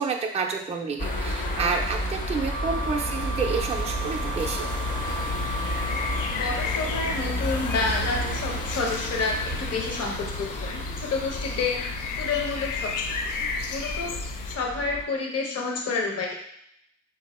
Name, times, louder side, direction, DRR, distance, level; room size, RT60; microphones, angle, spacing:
voice 1, 0.0-4.8, right 5 dB, 20° right, 1 dB, 0.4 m, -29 dB
sound 1, 1.0-15.0, left 1 dB, 30° left, 0.6 m, -31 dB
Wind instrument woodwind instrument, 2.5-6.5, right 5 dB, 80° right, 0.5 m, -36 dB
sound 2, 5.0-14.6, left 4 dB, 85° left, 0.5 m, -34 dB
voice 2, 6.3-11.8 12.2-13.1 13.7-14.1 14.5-16.3, left 4 dB, 55° left, 0 dB, 0.8 m, -29 dB
4.2 x 2.6 x 4.2 m, 0.75 s
wide cardioid pair, 155°, 30 cm